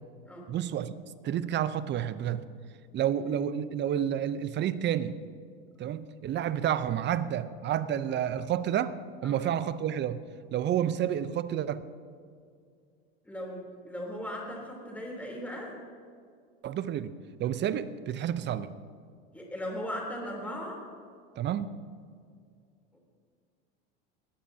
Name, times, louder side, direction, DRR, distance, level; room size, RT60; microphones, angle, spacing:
voice 1, 0.5-0.9 1.2-2.5 2.9-5.2 5.8-8.9 9.2-10.2 10.5-11.8 16.6-17.1 17.4-18.7 21.4-21.7, right 10 dB, 35° right, 14 dB, 0.7 m, -30 dB
voice 2, 13.2-15.7 19.3-20.8 22.9-23.0, equal, 5° left, -1 dB, 3.5 m, -38 dB
20.0 x 14.5 x 2.8 m, 2.2 s
hypercardioid pair, 90°, 30 cm